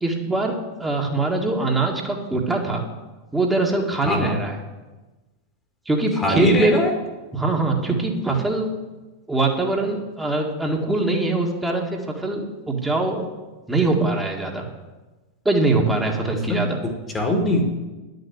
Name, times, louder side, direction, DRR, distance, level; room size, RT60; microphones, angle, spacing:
voice 1, 0.0-2.8 3.3-4.6 5.9-6.7 7.3-8.7 9.3-13.2 13.7-14.6 15.5-16.8, right 2 dB, 10° right, 0 dB, 1.9 m, -22 dB
voice 2, 4.0-4.4 6.1-6.9 16.5-17.7, left 1 dB, 15° left, 3 dB, 1.8 m, -22 dB
10.5 x 6.6 x 8.0 m, 1.1 s
figure-of-eight pair, 90°, 0 cm